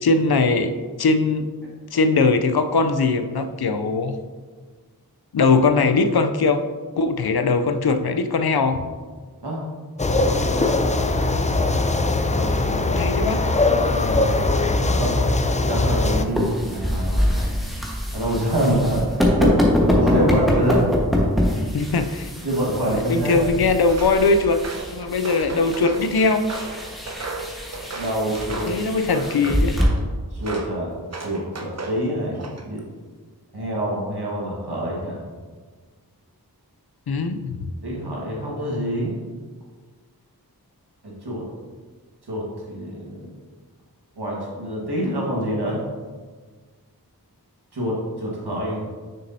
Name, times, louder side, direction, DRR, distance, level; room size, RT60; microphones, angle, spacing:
voice 1, 0.0-0.7 1.0-1.5 1.9-4.2 5.3-6.6 7.0-8.9 12.9-13.5 21.7-22.3 22.8-24.6 24.9-26.5 28.7-29.8 37.1-37.7, left 3 dB, 75° left, 9 dB, 0.5 m, -20 dB
sound 1, 10.0-16.2, left 2 dB, 20° left, 0.4 m, -21 dB
voice 2, 10.3-10.7 12.3-13.0 13.6-14.4 15.0-15.2 15.7-17.5 18.1-20.9 22.4-23.4 27.9-28.7 29.4-29.5 30.3-30.9 31.2-32.8 33.5-35.2 37.8-39.1 41.0-41.4 42.3-43.3 44.2-45.8 47.7-48.9, right 1 dB, 85° right, -4 dB, 1.6 m, -26 dB
sound 2, 16.2-29.8, left 1 dB, ahead, 1.3 m, -25 dB
Walk footsteps, 23.9-24.2 24.6-26.1 26.5-28.8 29.1-30.0 30.4-30.7 31.1-32.0 32.4-32.8, right 3 dB, 40° right, 0.8 m, -34 dB
6.6 x 6.4 x 2.7 m, 1.5 s
wide cardioid pair, 50°, 38 cm